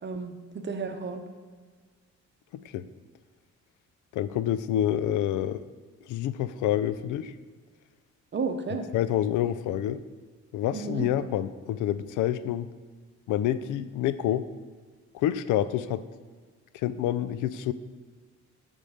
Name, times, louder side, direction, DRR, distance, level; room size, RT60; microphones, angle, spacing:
voice 1, 0.0-1.2 8.3-8.9 10.7-11.0, right 4 dB, 35° right, 7 dB, 0.9 m, -32 dB
voice 2, 4.1-5.6 6.1-7.3 8.9-10.0 10.5-12.7 13.3-14.4 15.1-16.0 16.7-17.7, left 11 dB, 85° left, 14 dB, 0.4 m, -27 dB
8.4 x 3.6 x 6.4 m, 1.5 s
cardioid pair, 90°, 30 cm